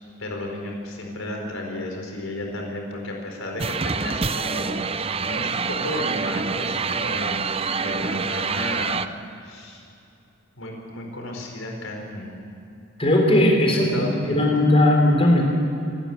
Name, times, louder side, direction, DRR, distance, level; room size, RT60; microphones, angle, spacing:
voice 1, 0.2-4.9 5.2-7.5 7.8-9.1 9.4-9.8 10.6-12.4 13.7-14.4, left 1 dB, 90° left, 1 dB, 4.5 m, -33 dB
sound 1, 3.6-9.1, right 5 dB, 30° right, 0.6 m, -26 dB
voice 2, 13.0-15.4, left 1 dB, 30° left, 0 dB, 3.8 m, -18 dB
27.0 x 12.5 x 8.8 m, 2.7 s
head